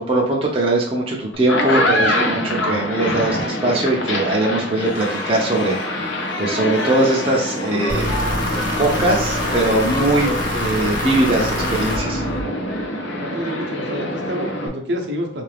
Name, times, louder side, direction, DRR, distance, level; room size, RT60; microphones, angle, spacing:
voice 1, 0.1-8.2 8.8-12.2, right 2 dB, 30° right, -2 dB, 0.5 m, -21 dB
sound 1, 1.3-14.7, left 1 dB, 75° left, 0.7 m, -25 dB
sound 2, 4.7-11.0, left 1 dB, 25° left, 0.5 m, -34 dB
sound 3, 7.9-12.8, left 1 dB, 45° left, 1.0 m, -25 dB
voice 2, 13.2-15.4, equal, 65° right, 1 dB, 0.7 m, -28 dB
3.7 x 2.5 x 3.3 m, 0.67 s
head